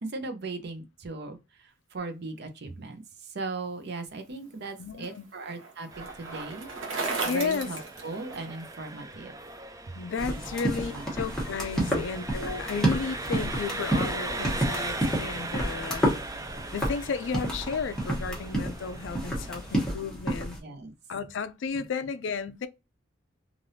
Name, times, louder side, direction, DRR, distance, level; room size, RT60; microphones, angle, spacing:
voice 1, 0.0-9.3 9.9-10.0 10.3-10.4 10.8-11.1 11.7-12.0 20.6-20.9 21.7-21.9, right 3 dB, 60° right, 0.6 m, -38 dB
Bicycle, 4.3-8.8, right 3 dB, 90° right, 0.9 m, -36 dB
voice 2, 4.8-5.2 7.3-7.7 9.9-16.1 16.7-20.6 21.1-22.7, left 5 dB, 70° left, 0.4 m, -33 dB
Engine, 5.9-19.9, right 2 dB, 20° right, 0.4 m, -39 dB
sound 1, 10.2-20.6, right 1 dB, 5° left, 1.1 m, -30 dB
3.3 x 2.5 x 2.6 m
head